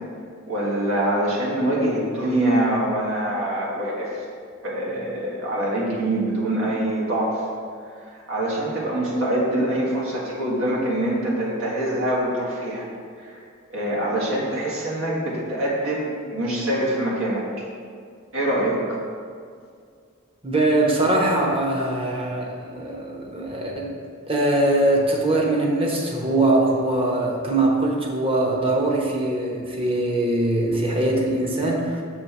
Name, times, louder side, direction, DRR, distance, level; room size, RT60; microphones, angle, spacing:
voice 1, 0.5-4.2 4.6-7.4 8.0-12.9 13.2-13.4 13.7-17.7 18.3-19.0, right 1 dB, 75° right, -5 dB, 1.7 m, -24 dB
voice 2, 20.4-23.9 24.3-32.0, right 2 dB, 25° right, -1 dB, 0.9 m, -22 dB
6.8 x 3.4 x 5.8 m, 2.2 s
head